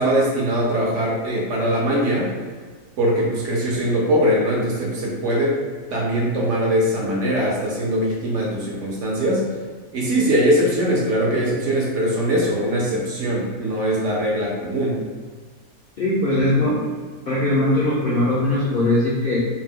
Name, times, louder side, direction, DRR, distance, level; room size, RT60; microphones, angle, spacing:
voice 1, 0.0-2.3 3.0-5.6 5.9-9.5 9.9-15.0, equal, 65° right, -3 dB, 0.9 m, -21 dB
voice 2, 16.0-16.8 17.3-19.4, left 1 dB, 60° left, -8 dB, 0.6 m, -20 dB
2.7 x 2.1 x 3.5 m, 1.5 s
omnidirectional pair, 1.5 m